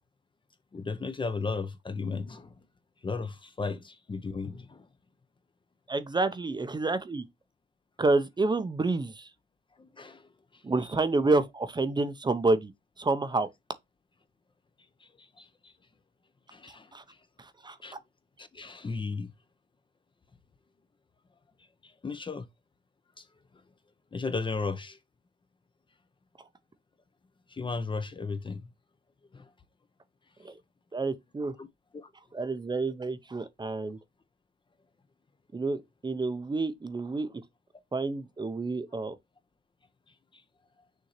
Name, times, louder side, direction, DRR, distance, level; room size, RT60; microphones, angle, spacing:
voice 1, 0.7-2.5 3.0-4.8 9.8-10.2 15.0-15.7 16.5-16.9 17.8-17.9 18.4-19.3 21.8-22.5 24.1-25.0 27.5-28.6 29.3-29.4 31.6-31.7 31.9-32.1, left 4 dB, 25° left, 0.6 m, -35 dB
voice 2, 5.9-7.2 8.0-9.3 10.6-12.7 13.0-13.5 16.9-17.0 17.4-17.8 30.4-30.5 30.9-31.6 32.3-34.0 35.5-37.3 37.9-39.1, right 3 dB, 20° right, 0.7 m, -29 dB
6.5 x 2.7 x 3.0 m
cardioid pair, 90°, 20 cm